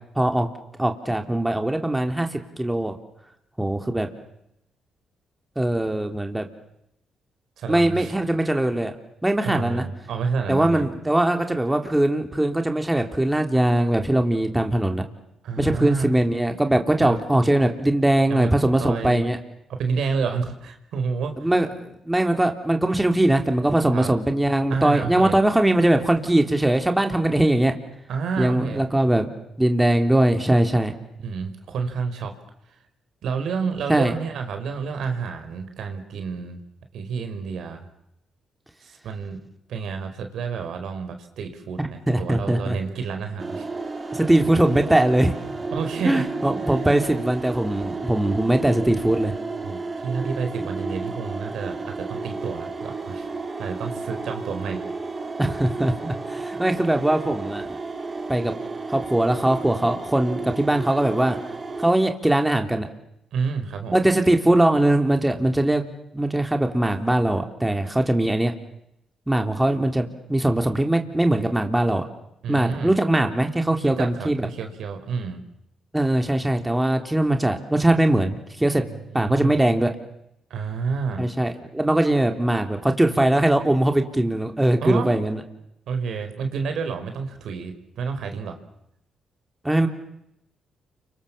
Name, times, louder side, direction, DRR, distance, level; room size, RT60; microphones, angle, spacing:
voice 1, 0.2-0.5 0.8-3.0 3.6-4.1 5.6-6.5 7.7-8.9 9.2-9.9 10.5-15.0 15.6-19.4 21.4-21.7 22.0-27.7 28.4-29.3 29.6-30.9 33.9-34.1 41.8-42.8 44.1-45.4 46.0-49.3 55.4-57.7 58.3-58.5 58.9-61.4 61.8-62.9 63.9-65.8 66.1-68.5 69.3-72.1 72.5-74.5 75.9-78.8 79.1-79.9 81.2-85.4 89.6-89.9, right 1 dB, 10° right, 5 dB, 3.6 m, -21 dB
voice 2, 7.6-8.1 8.4-8.5 9.4-10.9 15.4-16.1 17.0-17.2 18.3-18.5 18.8-19.3 19.7-21.5 23.9-24.1 24.7-25.4 28.1-28.8 31.2-32.3 33.2-36.6 36.9-37.9 38.8-39.4 39.7-43.7 45.7-46.3 46.6-46.8 49.6-53.3 53.6-54.8 63.3-64.0 72.4-73.0 73.8-75.4 78.8-79.6 80.5-81.3 84.8-85.2 85.9-88.6, right 5 dB, 75° right, 6 dB, 5.0 m, -29 dB
sound 1, 43.4-61.9, right 3 dB, 35° right, 6.9 m, -32 dB
29.5 x 26.0 x 7.4 m, 0.82 s
supercardioid pair, 65°, 0 cm